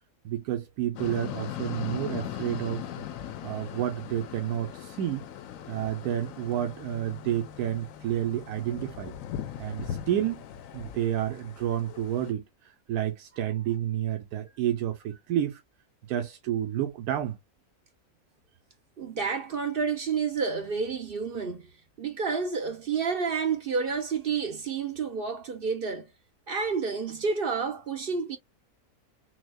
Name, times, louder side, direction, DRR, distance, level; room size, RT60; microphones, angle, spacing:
voice 1, 0.2-2.9 3.4-5.3 5.7-9.1 9.6-10.4 10.7-15.6 16.1-17.4, right 11 dB, 85° right, 1.1 m, -30 dB
sound 1, 1.0-12.3, left 10 dB, 75° left, 0.9 m, -39 dB
voice 2, 19.0-21.7 22.0-26.1 26.5-28.4, right 5 dB, 50° right, 0.7 m, -29 dB
6.1 x 2.2 x 2.2 m
omnidirectional pair, 1.5 m